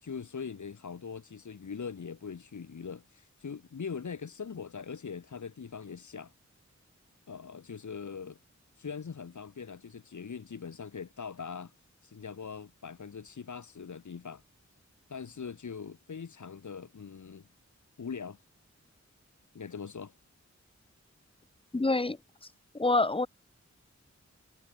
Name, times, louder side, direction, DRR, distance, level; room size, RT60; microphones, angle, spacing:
voice 1, 0.0-6.3 7.3-8.4 8.8-11.7 12.0-14.4 15.1-17.5 18.0-18.4 19.5-20.1, left 6 dB, 90° left, 1.6 m, -41 dB
voice 2, 21.7-22.2 22.7-23.3, left 2 dB, 20° left, 0.6 m, -26 dB
wide cardioid pair, 80°, 29 cm